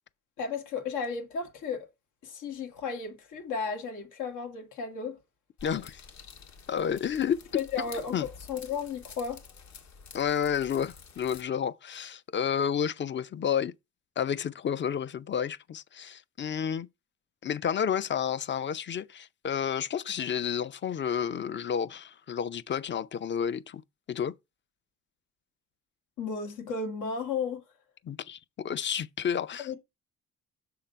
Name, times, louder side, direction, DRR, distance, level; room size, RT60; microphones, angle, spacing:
voice 1, 0.4-1.9 2.2-5.2 7.5-9.4 26.2-27.6 29.6-29.8, left 5 dB, 85° left, 1.9 m, -34 dB
sound 1, 5.6-11.4, left 6 dB, 65° left, 1.8 m, -50 dB
voice 2, 5.6-6.0 6.7-7.4 8.1-8.3 10.1-13.7 14.2-16.9 17.4-23.8 24.1-24.3 28.0-29.7, left 8 dB, 40° left, 0.5 m, -30 dB
6.7 x 3.8 x 5.5 m
cardioid pair, 90°, 30 cm